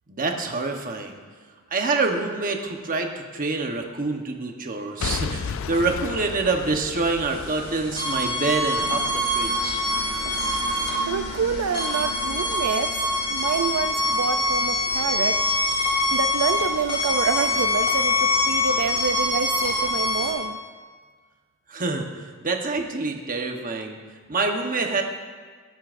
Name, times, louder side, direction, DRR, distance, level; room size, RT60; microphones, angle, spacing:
voice 1, 0.1-1.2 1.7-9.8 21.7-24.0 24.3-25.0, right 3 dB, 40° right, 3 dB, 1.1 m, -26 dB
Boom / Shatter / Crushing, 5.0-9.0 9.5-9.6, left 6 dB, 60° left, 0.4 m, -33 dB
sound 1, 6.9-14.9, left 1 dB, 75° left, 1.4 m, -40 dB
sound 2, 7.3-20.3, left 2 dB, 25° left, 3.3 m, -25 dB
voice 2, 10.7-12.9 13.3-15.4 16.1-20.6, right 6 dB, 75° right, 8 dB, 0.4 m, -27 dB
18.0 x 11.0 x 2.6 m, 1.5 s
head